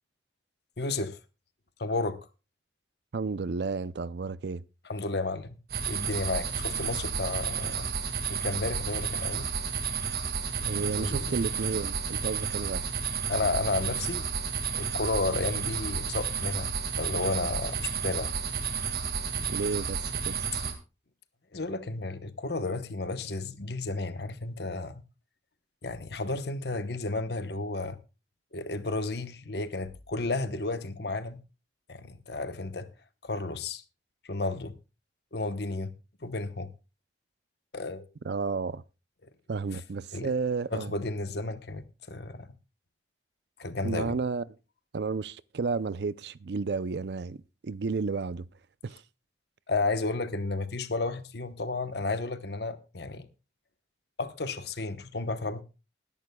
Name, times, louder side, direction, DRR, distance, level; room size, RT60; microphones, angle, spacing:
voice 1, 0.8-1.2 1.8-2.2 4.9-5.6 5.9-7.9 8.3-9.5 10.8-11.3 13.3-14.3 14.7-18.3 21.5-25.0 25.8-28.0 28.5-31.4 31.9-32.9 33.2-33.8 34.2-34.7 35.3-35.9 36.2-36.7 37.7-38.1 40.1-40.3 40.7-42.5 43.6-44.2 49.7-53.3 54.2-55.6, left 3 dB, 65° left, 1.0 m, -32 dB
voice 2, 3.1-4.6 10.6-12.9 19.4-20.0 20.2-20.5 38.2-38.8 39.5-40.9 43.8-44.5 44.9-48.4 48.8-49.0, right 4 dB, 70° right, 0.5 m, -32 dB
sound 1, 5.7-20.7, right 6 dB, 55° right, 1.8 m, -32 dB
20.5 x 11.0 x 2.3 m
head